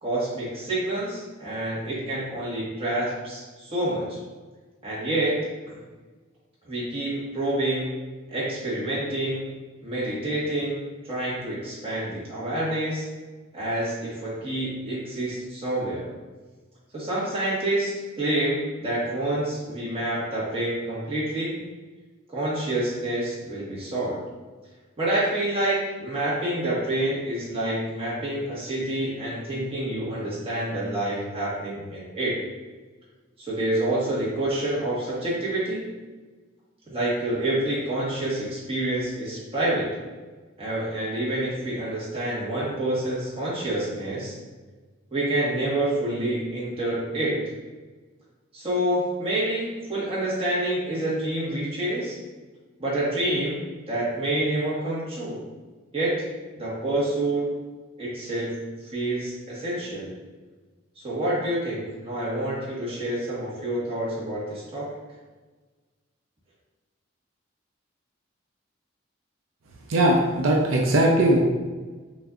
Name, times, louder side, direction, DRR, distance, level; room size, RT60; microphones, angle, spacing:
voice 1, 0.0-4.2 4.8-5.3 5.7-5.8 6.7-7.9 8.3-9.5 9.8-13.0 13.5-16.1 16.9-21.6 22.3-24.2 25.0-32.4 33.4-35.8 36.9-39.9 40.6-44.3 45.1-47.4 48.5-52.2 52.8-53.6 53.9-55.4 55.9-56.2 56.6-57.5 58.0-58.6 58.9-60.1 61.0-64.9, right 1 dB, 30° right, -8 dB, 1.5 m, -27 dB
voice 2, 69.9-71.4, right 1 dB, 85° right, -1 dB, 0.6 m, -19 dB
5.9 x 2.6 x 2.4 m, 1.3 s
head